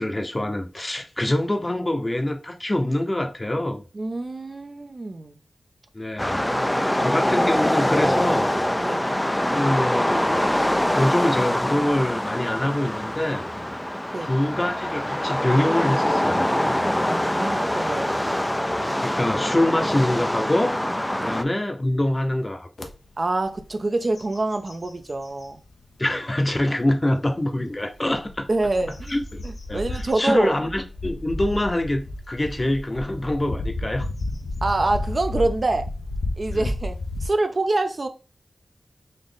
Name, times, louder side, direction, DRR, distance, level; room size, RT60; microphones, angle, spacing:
voice 1, 0.0-3.8 5.9-6.4 7.0-8.5 9.5-10.3 10.9-13.4 14.2-16.5 19.0-20.8 21.2-22.7 26.0-28.5 29.1-29.4 29.7-29.8 30.2-34.1, left 1 dB, 30° left, 0.7 m, -24 dB
voice 2, 3.9-5.4 6.8-7.2 8.8-9.1 14.1-14.3 17.2-18.1 21.2-21.4 23.2-25.6 28.5-30.5 34.6-35.9 36.4-38.1, right 2 dB, 50° right, 0.5 m, -26 dB
sound 1, 6.2-21.4, left 1 dB, 10° left, 0.3 m, -24 dB
sound 2, 22.8-22.9 23.4-23.7 24.0-25.5 26.1-26.2 27.9-37.3, left 2 dB, 85° left, 0.6 m, -32 dB
4.0 x 2.5 x 3.5 m
cardioid pair, 55°, 0 cm